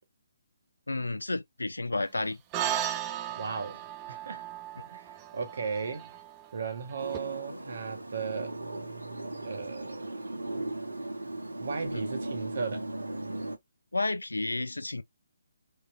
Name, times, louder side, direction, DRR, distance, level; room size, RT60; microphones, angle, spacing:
voice 1, 0.9-2.4 11.9-12.0 13.9-15.0, left 2 dB, 75° left, 0.4 m, -31 dB
sound 1, 2.5-7.2, right 11 dB, 20° right, 0.4 m, -36 dB
voice 2, 3.3-4.4 4.9-6.1 6.5-8.6 9.4-10.7 11.6-12.9, right 5 dB, 50° right, 0.9 m, -36 dB
sound 2, 7.0-13.6, right 2 dB, 75° right, 0.8 m, -37 dB
3.3 x 2.8 x 2.2 m
figure-of-eight pair, 140°, 0 cm